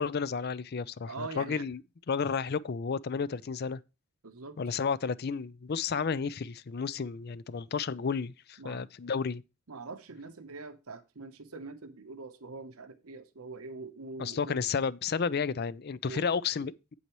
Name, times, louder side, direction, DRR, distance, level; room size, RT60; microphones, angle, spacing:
voice 1, 0.0-1.8 2.1-3.8 4.6-9.4 14.2-16.7, left 5 dB, 45° left, 0.4 m, -32 dB
voice 2, 1.0-1.7 4.2-4.6 8.6-8.9 9.7-14.6 16.0-16.3, right 3 dB, 80° right, 0.9 m, -43 dB
8.7 x 8.3 x 3.1 m
head